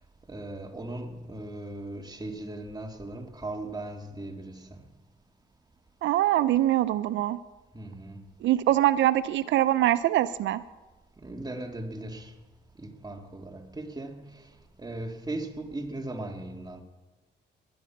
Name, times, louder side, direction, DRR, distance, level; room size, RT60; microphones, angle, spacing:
voice 1, 0.3-4.8 7.7-8.3 11.2-12.4 12.8-16.8, right 2 dB, 20° right, 2.0 m, -38 dB
voice 2, 6.0-7.4 8.4-10.6, right 13 dB, 85° right, 0.4 m, -23 dB
19.0 x 11.0 x 5.9 m
cardioid pair, 75°, 19 cm